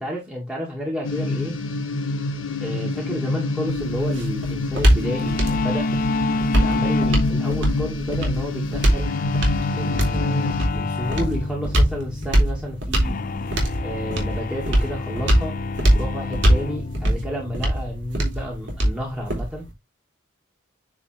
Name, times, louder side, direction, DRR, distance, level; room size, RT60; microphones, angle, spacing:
voice 1, 0.0-1.6 2.6-5.9 6.5-9.1 9.7-13.2 13.8-15.5 15.9-19.7, equal, 5° right, 2.1 m, -31 dB
sound 1, 1.0-10.7, left 2 dB, 85° left, 1.3 m, -27 dB
sound 2, 3.7-19.7, right 1 dB, 65° right, 3.3 m, -23 dB
sound 3, 5.0-19.5, left 3 dB, 45° left, 0.5 m, -29 dB
9.7 x 3.8 x 3.3 m
head